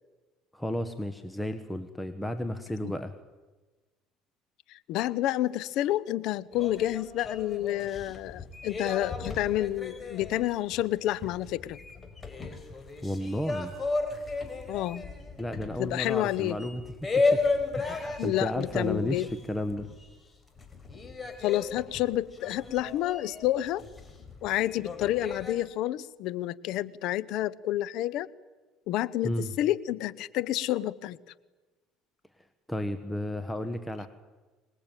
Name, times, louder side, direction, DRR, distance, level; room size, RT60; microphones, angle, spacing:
voice 1, 0.5-3.1 13.0-13.7 15.4-17.4 17.7-19.9 29.2-29.5 32.7-34.1, left 1 dB, 5° left, 1.5 m, -33 dB
voice 2, 4.7-11.8 14.7-15.1 15.8-16.6 18.2-19.3 21.4-23.8 24.4-28.3 28.9-31.2, left 14 dB, 70° left, 0.9 m, -29 dB
sound 1, 6.5-20.3 20.6-25.7, left 3 dB, 25° left, 4.6 m, -34 dB
25.0 x 20.0 x 9.2 m
supercardioid pair, 100°, 0 cm